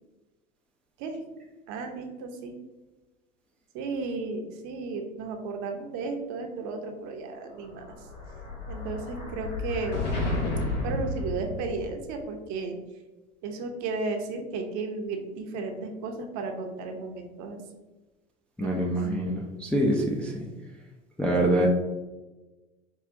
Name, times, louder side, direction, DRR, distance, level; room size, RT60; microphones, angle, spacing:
voice 1, 1.7-2.6 3.7-7.8 8.7-10.1 10.8-12.8 13.4-17.6 18.6-18.9, right 3 dB, 50° right, 4 dB, 0.7 m, -34 dB
Explosion, 7.5-12.1, left 2 dB, 75° left, 1.1 m, -32 dB
voice 2, 18.6-20.5 21.2-21.7, right 1 dB, 5° left, -2 dB, 0.3 m, -25 dB
4.7 x 2.4 x 2.5 m, 1.1 s
hypercardioid pair, 80°, 37 cm